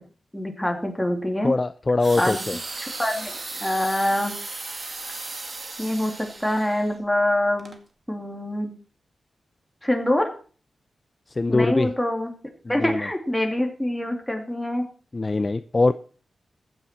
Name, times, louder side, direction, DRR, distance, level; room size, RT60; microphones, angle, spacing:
voice 1, 0.3-1.5 2.2-2.4 2.8-3.3 3.6-4.3 5.8-7.7 8.1-8.7 9.8-10.3 11.5-12.3 12.7-14.8, left 1 dB, 5° left, 3 dB, 2.8 m, -25 dB
voice 2, 1.4-2.6 11.3-11.9 12.6-13.1 15.1-15.9, left 3 dB, 30° left, 13 dB, 0.5 m, -22 dB
sound 1, 2.0-7.0 7.6-7.8, right 3 dB, 35° right, 2.1 m, -36 dB
15.0 x 9.8 x 4.4 m, 0.40 s
wide cardioid pair, 115°, 0 cm